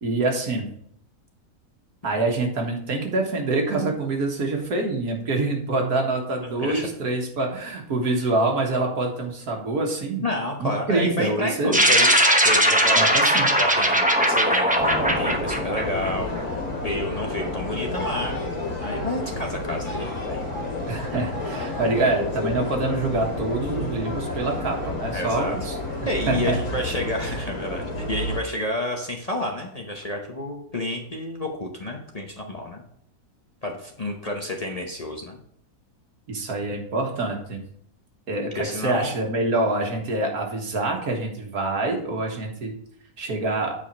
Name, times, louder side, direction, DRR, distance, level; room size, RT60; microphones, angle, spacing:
voice 1, 0.0-0.7 2.0-10.2 10.6-11.8 12.9-13.5 20.9-25.7 26.3-26.6 36.3-37.6 38.3-42.7 43.2-43.7, right 2 dB, 75° right, 1 dB, 2.0 m, -26 dB
voice 2, 6.6-6.9 10.2-20.4 25.1-25.6 26.0-32.8 33.6-35.4 38.5-39.1, left 1 dB, 30° left, 0 dB, 0.8 m, -30 dB
sound 1, 11.7-16.4, right 1 dB, 10° right, 0.5 m, -19 dB
sound 2, 14.8-28.4, left 2 dB, 75° left, 2.8 m, -30 dB
9.0 x 5.0 x 4.4 m, 0.67 s
omnidirectional pair, 1.6 m